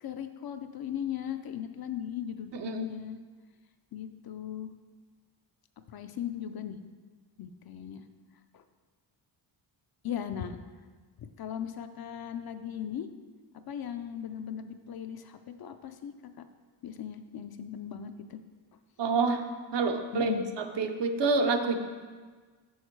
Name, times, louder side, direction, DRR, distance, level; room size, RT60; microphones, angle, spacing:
voice 1, 0.0-3.2 3.9-4.7 5.9-6.8 7.4-8.0 8.5-8.6 10.0-10.6 11.2-13.1 13.7-16.1 16.8-18.4 20.1-20.5, left 9 dB, 55° left, 8 dB, 0.5 m, -38 dB
voice 2, 2.5-2.9 19.0-19.4 19.7-21.8, right 4 dB, 65° right, 5 dB, 0.8 m, -28 dB
6.4 x 6.3 x 4.6 m, 1.5 s
wide cardioid pair, 140°, 46 cm